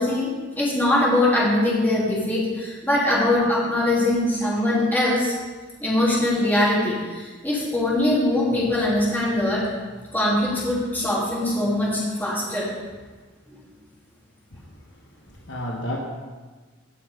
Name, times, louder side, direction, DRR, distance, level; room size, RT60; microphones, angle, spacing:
voice 1, 0.0-5.3 5.8-9.6 10.1-12.7, left 1 dB, 10° left, -6 dB, 3.0 m, -22 dB
voice 2, 14.5-16.0, equal, 60° left, -1 dB, 1.4 m, -34 dB
17.5 x 5.8 x 5.2 m, 1.4 s
head